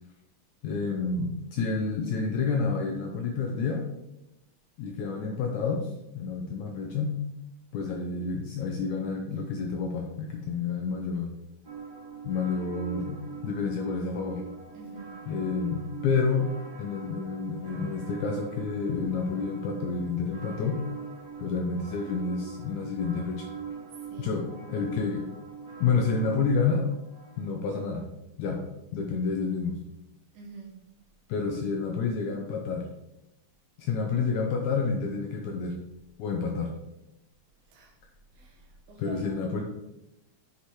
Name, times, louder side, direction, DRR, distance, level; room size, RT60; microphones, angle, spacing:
voice 1, 0.6-3.9 4.8-7.2 7.7-11.3 12.2-14.4 15.3-16.5 16.8-20.8 21.4-23.5 24.2-25.2 25.8-26.9 27.4-28.0 28.4-28.6 28.9-29.8 31.3-32.9 33.8-35.8 36.2-36.7 39.0-39.6, left 4 dB, 80° left, 1.7 m, -29 dB
sound 1, 11.6-27.6, right 5 dB, 40° right, 1.5 m, -43 dB
voice 2, 14.7-15.2 24.0-24.4 30.3-30.8 37.7-38.0 38.3-39.3, right 5 dB, 85° right, 3.0 m, -47 dB
8.3 x 4.9 x 3.0 m
omnidirectional pair, 4.0 m